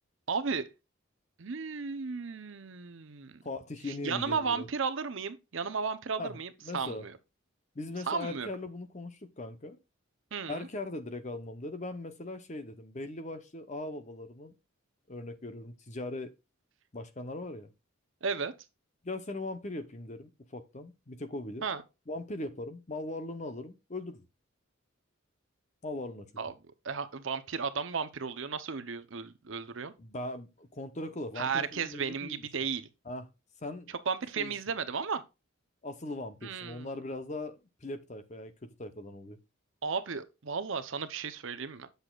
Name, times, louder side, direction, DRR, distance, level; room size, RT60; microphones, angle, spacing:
voice 1, 0.3-0.7 1.4-3.4 3.8-7.2 8.1-8.5 10.3-10.7 18.2-18.5 21.6-21.8 26.4-26.5 26.8-29.9 31.4-32.9 33.9-35.2 36.4-37.0 39.8-41.9, right 5 dB, 65° right, 0.7 m, -34 dB
voice 2, 3.4-4.7 6.2-6.4 6.6-7.1 7.7-9.8 10.5-14.5 15.1-16.3 16.9-17.7 19.0-21.6 22.1-24.2 25.8-26.3 30.0-32.5 33.1-33.2 33.6-33.9 34.4-34.5 35.8-39.4, left 2 dB, 35° left, 0.8 m, -39 dB
8.0 x 6.7 x 2.4 m
head